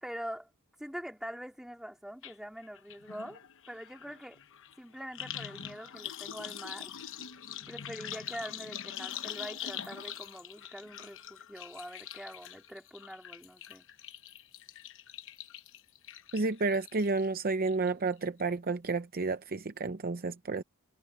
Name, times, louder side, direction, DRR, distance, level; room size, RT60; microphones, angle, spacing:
voice 1, 0.0-0.5 0.8-3.4 3.7-4.4 4.8-6.9 7.7-13.9, equal, ahead, 3.6 m, -44 dB
sound 1, 2.2-2.3 2.6-17.3 17.6-18.1 18.4-18.5, left 9 dB, 60° left, 1.0 m, -44 dB
voice 2, 16.3-20.6, right 3 dB, 40° right, 0.7 m, -31 dB
head